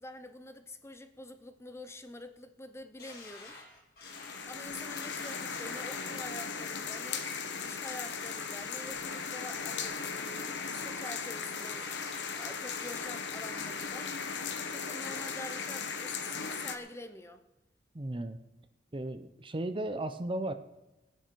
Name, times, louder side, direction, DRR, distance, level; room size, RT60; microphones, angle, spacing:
voice 1, 0.0-3.6 4.4-7.3 7.6-14.1 14.7-17.4, left 1 dB, 15° left, 9 dB, 0.7 m, -46 dB
sound 1, 3.0-6.2 6.8-7.2 7.6-8.2 8.6-9.1 9.5-10.2 10.5-11.1 11.5-13.1 13.5-14.1 14.5-14.6, left 3 dB, 60° left, 4.0 m, -52 dB
sound 2, 4.0-16.8, left 5 dB, 75° left, 1.1 m, -37 dB
voice 2, 17.9-18.4 18.9-20.5, right 1 dB, 30° right, 9 dB, 0.6 m, -35 dB
19.0 x 10.0 x 4.6 m, 1.0 s
head